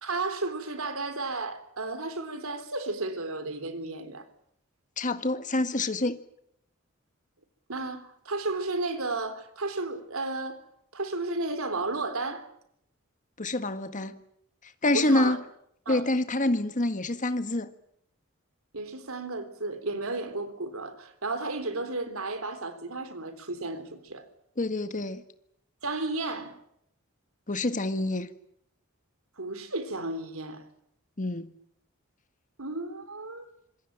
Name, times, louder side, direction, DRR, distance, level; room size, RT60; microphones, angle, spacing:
voice 1, 0.0-4.3 7.7-10.6 10.9-12.5 14.9-15.4 15.9-16.0 18.7-24.2 25.8-26.5 29.4-30.6 32.6-33.5, right 2 dB, 80° right, 3.7 m, -33 dB
voice 2, 5.0-6.2 13.4-14.2 14.6-15.4 15.9-17.7 24.6-25.2 27.5-28.3 31.2-31.5, left 2 dB, 35° left, 1.7 m, -27 dB
26.0 x 21.5 x 9.0 m
head